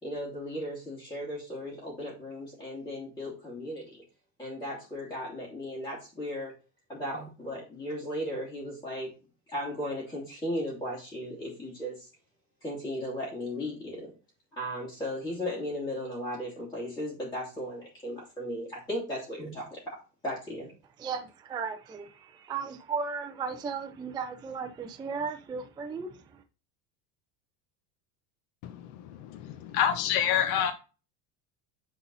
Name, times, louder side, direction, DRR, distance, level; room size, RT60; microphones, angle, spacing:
voice 1, 0.0-4.0 4.4-6.5 6.9-9.1 9.5-12.1 12.6-14.1 14.5-20.0 20.2-20.7, equal, 10° left, 2.9 m, -36 dB
voice 2, 21.0-26.2, right 5 dB, 10° right, 0.4 m, -35 dB
voice 3, 28.6-30.7, left 9 dB, 75° left, 1.1 m, -28 dB
10.0 x 4.0 x 4.0 m
cardioid pair, 160°, 47 cm